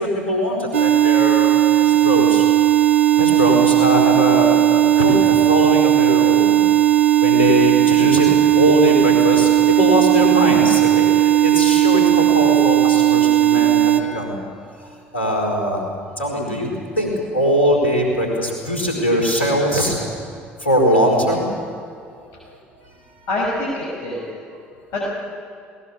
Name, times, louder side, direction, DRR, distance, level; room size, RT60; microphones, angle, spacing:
voice 1, 0.0-1.5 1.8-2.4 3.2-6.6 7.2-8.3 8.5-14.4 15.1-15.8 16.2-16.7 17.0-20.0 20.6-21.5 22.4-22.6, equal, 85° left, 0 dB, 4.6 m, -21 dB
sound 1, 0.7-14.0, right 13 dB, 80° right, 1.0 m, -15 dB
voice 2, 23.3-24.4 24.9-25.0, left 2 dB, 55° left, -5 dB, 6.8 m, -25 dB
20.5 x 19.0 x 8.4 m, 2.4 s
figure-of-eight pair, 60°, 6 cm